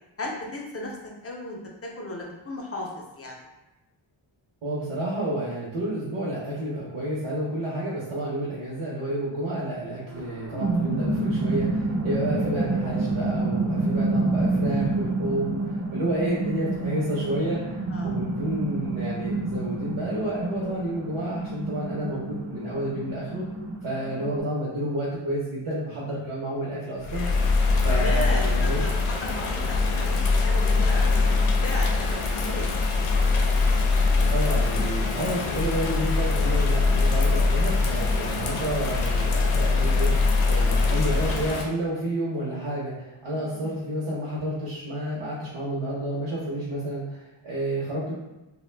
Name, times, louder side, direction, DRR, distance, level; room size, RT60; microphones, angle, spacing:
voice 1, 0.2-1.0 1.2-3.5 13.9-14.1 17.9-18.2 27.9-32.7 43.3-43.7, left 2 dB, 30° left, -1 dB, 0.4 m, -36 dB
voice 2, 4.6-23.5 23.8-27.3 27.8-28.8 34.2-48.1, right 1 dB, 75° right, -7 dB, 0.7 m, -30 dB
sound 1, 10.1-24.4, right 2 dB, 35° right, 0.4 m, -28 dB
Bird vocalization bird call bird song / Rain, 27.0-41.6, left 3 dB, 80° left, 0.5 m, -23 dB
2.5 x 2.1 x 3.2 m, 1.0 s
wide cardioid pair, 175°, 50 cm